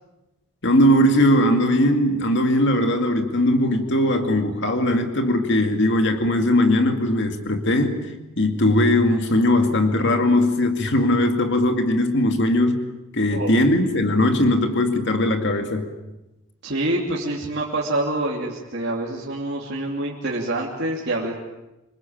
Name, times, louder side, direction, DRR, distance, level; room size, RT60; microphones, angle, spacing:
voice 1, 0.6-8.0 8.4-12.8 13.1-15.9, left 1 dB, 55° left, 5 dB, 2.3 m, -19 dB
voice 2, 16.6-21.3, right 1 dB, 50° right, -4 dB, 3.0 m, -26 dB
26.5 x 23.0 x 8.9 m, 0.99 s
head